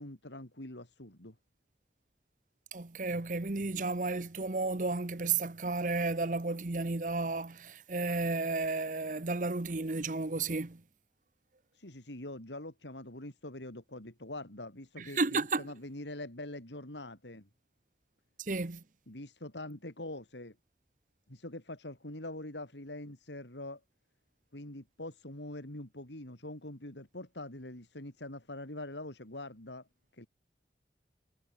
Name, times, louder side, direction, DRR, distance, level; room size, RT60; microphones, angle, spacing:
voice 1, 0.0-1.3 11.7-17.5 19.1-20.5 21.3-23.8 24.5-29.9 30.1-30.3, left 1 dB, 90° left, 4.9 m, -44 dB
voice 2, 2.7-10.8 15.0-15.6 18.4-18.8, right 3 dB, 45° right, 1.0 m, -33 dB
head